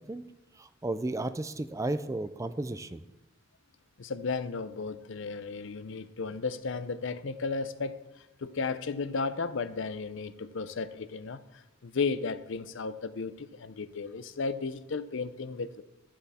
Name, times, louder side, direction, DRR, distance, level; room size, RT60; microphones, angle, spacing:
voice 1, 0.6-3.0, right 2 dB, 15° right, 12 dB, 0.4 m, -33 dB
voice 2, 4.0-8.0 8.4-11.4 11.8-15.8, left 4 dB, 65° left, 13 dB, 0.6 m, -34 dB
12.0 x 10.5 x 4.2 m, 0.95 s
head